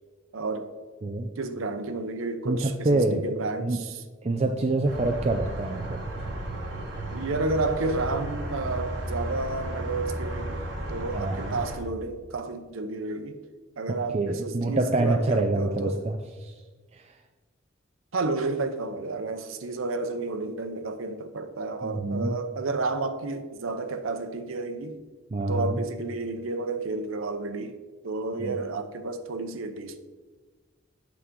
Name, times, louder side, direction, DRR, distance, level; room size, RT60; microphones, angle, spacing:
voice 1, 0.3-0.7 1.4-4.0 4.4-4.6 7.1-10.6 10.9-13.4 13.8-16.0 18.1-25.0 25.5-27.8 28.0-30.0, right 3 dB, 90° right, 0.7 m, -31 dB
voice 2, 2.5-3.2 3.6-3.8 4.2-6.0 11.1-11.5 13.9-16.5 16.9-17.0 21.8-22.4 25.3-25.8 28.4-28.6, right 2 dB, 30° right, 0.4 m, -26 dB
sound 1, 4.8-11.8, right 1 dB, 60° right, 1.6 m, -34 dB
8.5 x 6.3 x 3.7 m
head